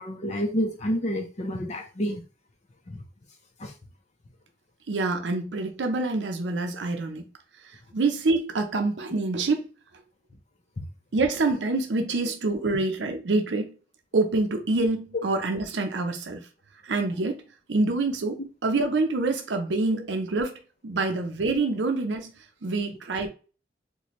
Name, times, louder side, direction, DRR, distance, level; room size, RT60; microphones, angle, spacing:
voice 1, 0.0-2.2 2.9-3.0 3.6-3.7 15.1-15.2 19.9-20.0, equal, 40° left, 0.6 m, -29 dB
voice 2, 4.9-7.3 7.6-9.7 11.1-13.7 14.1-16.5 16.8-17.4 17.7-20.5 20.8-23.3, right 3 dB, 85° right, 0.6 m, -26 dB
4.1 x 2.2 x 3.0 m
head